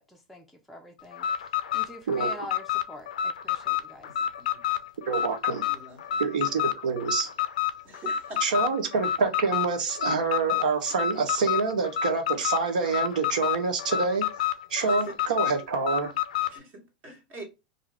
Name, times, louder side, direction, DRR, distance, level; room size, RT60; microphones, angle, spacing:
voice 1, 0.0-4.1, left 1 dB, ahead, 0.4 m, -45 dB
Alarm, 1.1-16.6, left 10 dB, 75° left, 0.3 m, -29 dB
voice 2, 5.1-5.6 6.2-7.3 8.4-14.3 14.7-16.1, right 4 dB, 80° right, 0.7 m, -27 dB
voice 3, 5.7-6.2 7.8-8.4 14.8-15.1 16.5-17.4, right 2 dB, 45° right, 1.2 m, -43 dB
2.5 x 2.3 x 3.2 m
hypercardioid pair, 100°, 4 cm